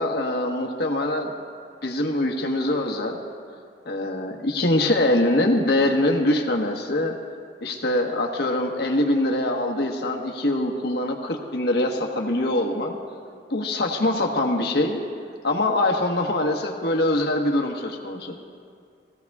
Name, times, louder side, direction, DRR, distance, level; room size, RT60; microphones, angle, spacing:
voice 1, 0.0-1.3 1.8-3.2 3.8-7.1 7.6-13.0 13.5-15.0 15.4-18.4, left 1 dB, 65° left, 1 dB, 1.3 m, -23 dB
22.5 x 15.5 x 2.4 m, 2.3 s
head